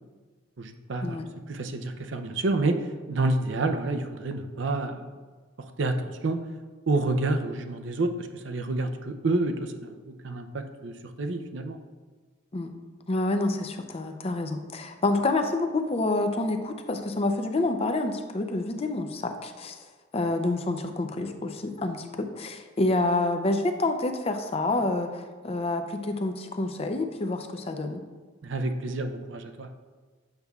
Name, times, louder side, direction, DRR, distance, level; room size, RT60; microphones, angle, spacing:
voice 1, 0.6-1.2 1.5-5.0 5.6-6.4 6.9-11.8 28.4-29.7, right 2 dB, 65° right, 6 dB, 0.5 m, -29 dB
voice 2, 13.1-19.8 20.1-28.0, left 2 dB, 30° left, 6 dB, 0.5 m, -28 dB
8.0 x 6.7 x 2.3 m, 1.4 s
head